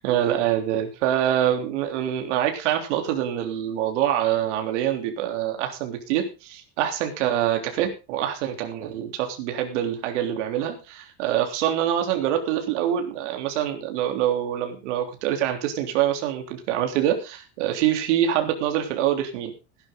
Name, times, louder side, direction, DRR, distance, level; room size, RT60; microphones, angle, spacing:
voice 1, 0.0-19.5, right 11 dB, 85° right, 5 dB, 3.5 m, -25 dB
16.5 x 11.5 x 3.9 m, 0.30 s
cardioid pair, 160°, 35 cm